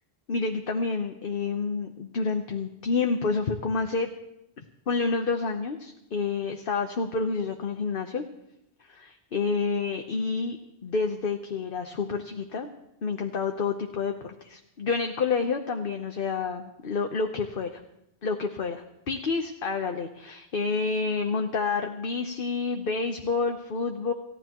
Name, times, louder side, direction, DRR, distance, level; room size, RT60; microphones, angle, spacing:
voice 1, 0.3-4.1 4.9-8.2 8.9-10.6 10.8-12.7 13.0-17.8 18.2-24.1, left 4 dB, 60° left, 4 dB, 1.1 m, -29 dB
28.5 x 15.0 x 3.0 m, 0.82 s
omnidirectional pair, 1.1 m